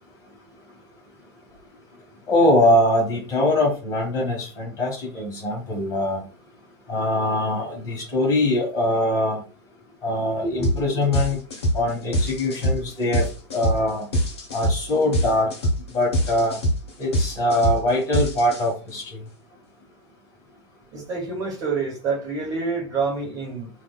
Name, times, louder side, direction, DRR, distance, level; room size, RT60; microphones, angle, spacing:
voice 1, 2.3-6.2 6.9-9.4 10.0-11.4 11.7-14.1 14.5-15.5 15.9-16.6 17.0-19.2, left 1 dB, 25° left, -2 dB, 1.2 m, -22 dB
sound 1, 10.6-10.8 11.1-18.9, equal, 65° left, 0.9 m, -24 dB
voice 2, 20.9-23.7, right 4 dB, 25° right, -1 dB, 1.4 m, -27 dB
3.4 x 2.5 x 2.3 m, 0.33 s
figure-of-eight pair, 95°, 15 cm